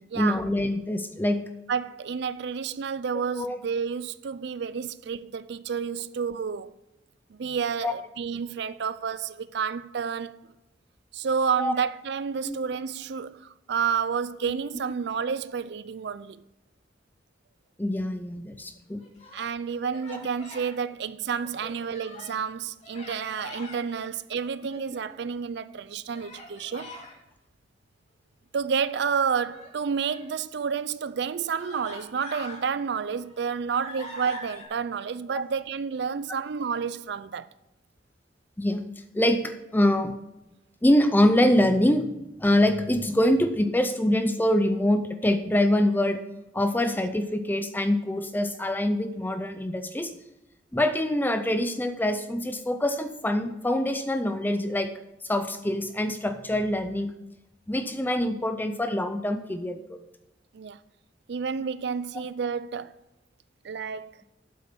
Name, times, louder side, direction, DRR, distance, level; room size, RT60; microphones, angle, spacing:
voice 1, 0.2-1.5 3.3-3.6 7.8-7.9 11.6-11.7 12.4-12.6 14.4-14.5 17.8-19.1 20.1-20.3 21.6-21.7 38.6-38.8 39.1-40.1 40.8-46.2 46.5-50.1 50.7-54.9 55.2-57.1 57.7-60.0, left 1 dB, 10° left, 0.5 m, -25 dB
voice 2, 1.7-6.7 7.3-10.5 11.1-16.4 19.3-27.0 28.5-37.5 60.5-60.8 61.3-63.0 63.6-64.1, right 6 dB, 65° right, 0.4 m, -30 dB
Human voice, 18.9-19.5 19.9-20.7 21.2-22.4 22.8-23.8 24.4-25.2 26.1-27.1 29.4-30.3 31.0-31.1 31.6-32.6 33.1-34.6, left 1 dB, 40° left, 2.7 m, -44 dB
8.5 x 8.0 x 6.1 m
head